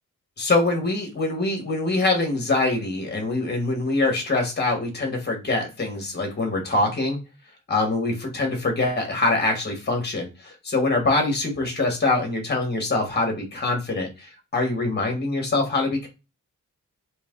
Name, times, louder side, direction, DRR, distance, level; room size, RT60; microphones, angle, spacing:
voice 1, 0.4-7.2 7.7-16.1, left 2 dB, 30° left, 2 dB, 1.2 m, -24 dB
3.2 x 2.9 x 3.6 m, 0.28 s
wide cardioid pair, 170°, 32 cm